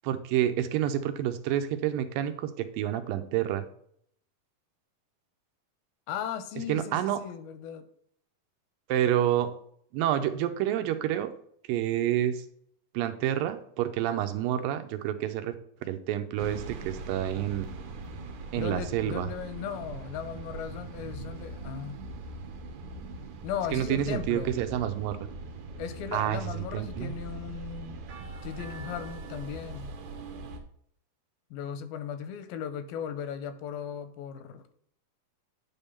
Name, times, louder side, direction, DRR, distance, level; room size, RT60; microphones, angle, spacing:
voice 1, 0.0-3.7 6.7-7.2 8.9-9.5 9.9-11.3 11.7-12.5 12.9-15.6 15.9-17.7 18.5-19.3 23.7-25.2 26.1-26.4 26.7-27.1, right 11 dB, 85° right, 9 dB, 2.4 m, -28 dB
voice 2, 6.1-7.8 18.5-22.0 23.4-24.5 25.8-28.0 28.4-30.0 31.5-34.7, left 8 dB, 85° left, 11 dB, 2.6 m, -37 dB
sound 1, 16.4-30.6, right 3 dB, 65° right, 2.2 m, -41 dB
9.5 x 3.6 x 5.5 m, 0.65 s
omnidirectional pair, 4.1 m